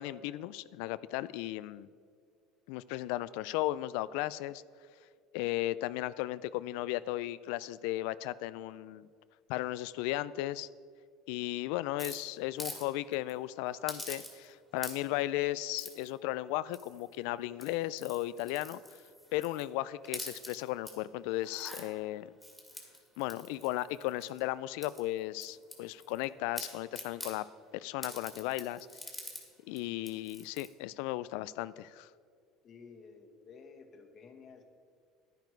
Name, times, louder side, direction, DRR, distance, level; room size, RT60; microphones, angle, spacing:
voice 1, 0.0-1.9 2.7-4.6 5.3-9.1 9.5-10.7 11.3-18.8 19.3-22.3 23.2-27.4 27.7-28.9 29.7-32.1, left 16 dB, 80° left, 17 dB, 0.3 m, -35 dB
sound 1, 12.0-12.8 13.1-13.3 13.9-14.5 14.8-15.2 15.8-16.1 16.7-17.1 17.5-19.7 20.0-20.9 21.4-21.8 22.4-24.4 24.8-26.2 26.5-27.3 28.0-29.4 29.8-29.9 30.0-30.7, left 1 dB, 5° left, 2.2 m, -45 dB
voice 2, 32.6-34.6, left 5 dB, 40° left, 4 dB, 1.4 m, -53 dB
10.5 x 10.5 x 4.6 m, 2.2 s
cardioid pair, 125°, 0 cm